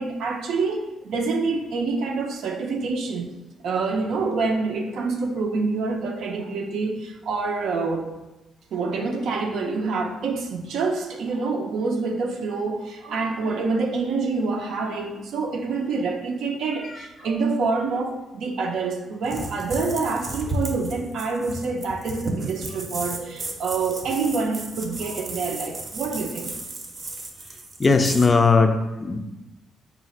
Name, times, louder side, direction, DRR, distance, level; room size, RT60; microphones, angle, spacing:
voice 1, 0.0-3.3 3.6-8.1 8.7-26.5, right 4 dB, 75° right, 3 dB, 0.5 m, -27 dB
sound 1, 19.2-28.3, right 2 dB, 35° right, 0.6 m, -34 dB
voice 2, 27.8-29.2, left 4 dB, 25° left, 6 dB, 0.3 m, -19 dB
3.9 x 2.4 x 4.1 m, 1.0 s
cardioid pair, 120°, 0 cm